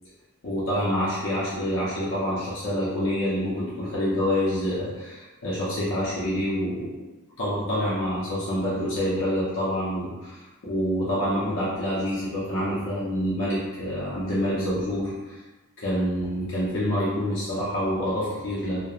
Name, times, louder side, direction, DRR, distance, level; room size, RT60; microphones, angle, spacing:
voice 1, 0.4-7.1 7.4-15.4 15.8-18.8, equal, 65° left, -9 dB, 0.6 m, -27 dB
2.9 x 2.1 x 2.3 m, 1.2 s
head